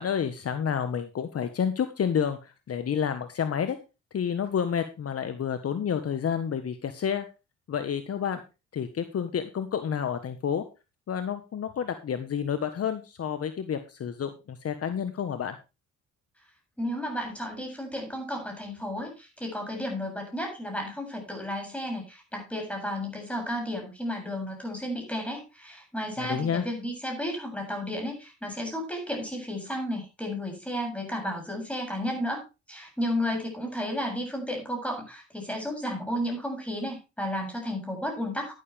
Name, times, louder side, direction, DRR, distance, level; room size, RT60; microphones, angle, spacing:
voice 1, 0.0-3.8 4.1-7.2 7.7-8.4 8.7-10.6 11.1-15.5 26.2-26.6, left 8 dB, 50° left, 10 dB, 1.4 m, -29 dB
voice 2, 16.8-32.4 32.7-38.5, equal, 5° left, 2 dB, 7.6 m, -33 dB
12.0 x 11.5 x 3.5 m, 0.28 s
cardioid pair, 90°, 30 cm